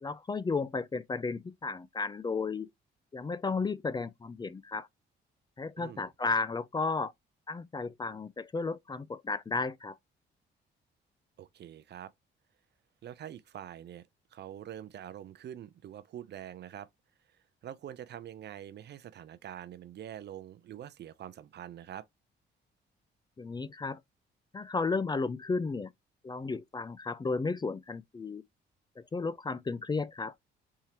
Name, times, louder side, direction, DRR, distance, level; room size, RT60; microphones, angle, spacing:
voice 1, 0.0-2.7 3.1-4.9 5.6-7.1 7.5-9.9 23.4-24.0 24.5-25.9 26.2-28.4 29.0-30.3, left 4 dB, 20° left, 0.4 m, -33 dB
voice 2, 5.8-6.1 11.4-12.1 13.0-16.9 17.6-22.1, right 10 dB, 60° right, 0.6 m, -45 dB
4.3 x 3.6 x 2.8 m
cardioid pair, 90°, 20 cm